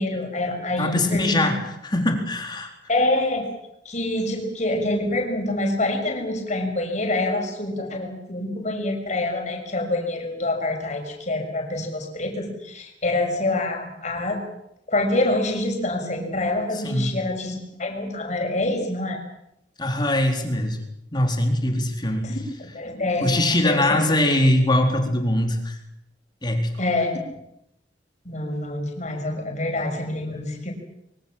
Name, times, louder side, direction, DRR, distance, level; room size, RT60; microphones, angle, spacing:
voice 1, 0.0-1.5 2.9-3.5 3.8-14.4 14.9-19.2 22.2-24.1 26.8-27.2 28.2-30.7, left 2 dB, 40° left, 3 dB, 6.3 m, -26 dB
voice 2, 0.8-2.7 16.8-17.3 19.8-20.8 21.1-22.4 23.2-25.8 26.4-26.7, left 1 dB, 25° left, 3 dB, 4.1 m, -22 dB
25.0 x 24.0 x 7.5 m, 0.80 s
head